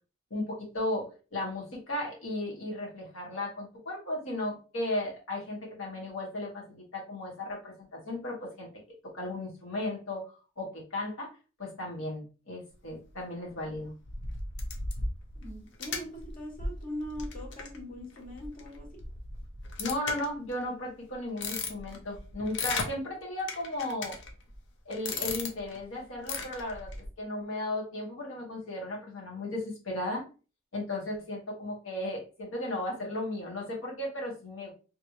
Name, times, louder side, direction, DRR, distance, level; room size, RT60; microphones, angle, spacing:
voice 1, 0.3-8.7 9.0-10.3 10.6-11.3 11.6-13.9 19.8-24.2 24.8-26.9 27.2-30.2 30.7-34.7, left 1 dB, 80° left, -2 dB, 1.5 m, -35 dB
sound 1, 13.7-20.6 21.1-22.9 23.5-24.6 24.9-25.8 26.2-27.1, left 3 dB, 60° left, 0.7 m, -37 dB
voice 2, 15.4-19.0, left 1 dB, 45° left, -1 dB, 1.5 m, -41 dB
3.3 x 3.0 x 2.7 m, 0.34 s
head